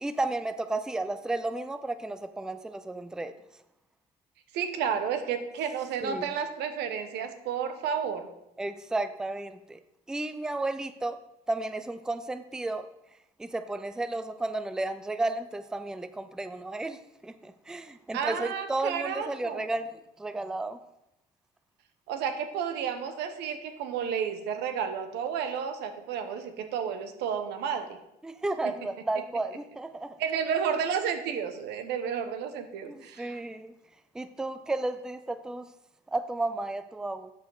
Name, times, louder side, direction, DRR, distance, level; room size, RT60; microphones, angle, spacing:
voice 1, 0.0-3.3 6.0-6.3 8.6-9.8 10.1-11.2 11.5-12.9 13.4-20.8 28.2-30.2 32.9-33.7 34.1-35.7 36.1-37.3, right 2 dB, 5° right, 11 dB, 0.4 m, -33 dB
voice 2, 4.5-8.3 18.1-19.7 22.1-28.0 28.6-28.7 30.2-33.4, right 7 dB, 85° right, 8 dB, 1.0 m, -31 dB
12.0 x 5.1 x 4.0 m, 0.86 s
cardioid pair, 110°, 17 cm